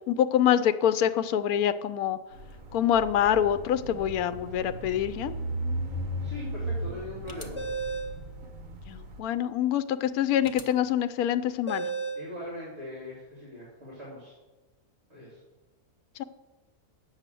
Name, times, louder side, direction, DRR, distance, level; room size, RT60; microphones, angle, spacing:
voice 1, 0.1-2.2 2.7-5.3 8.9-11.9 16.2-16.3, left 10 dB, 80° left, 12 dB, 1.0 m, -25 dB
sound 1, 2.3-9.2, right 1 dB, 65° right, 1.6 m, -36 dB
voice 2, 6.2-7.6 12.1-14.4 15.1-15.4, left 1 dB, 50° right, -6 dB, 3.2 m, -41 dB
sound 2, 7.3-8.2 10.4-10.6 11.7-12.3, right 4 dB, 25° left, 0.7 m, -33 dB
8.9 x 6.5 x 7.5 m, 1.1 s
omnidirectional pair, 1.5 m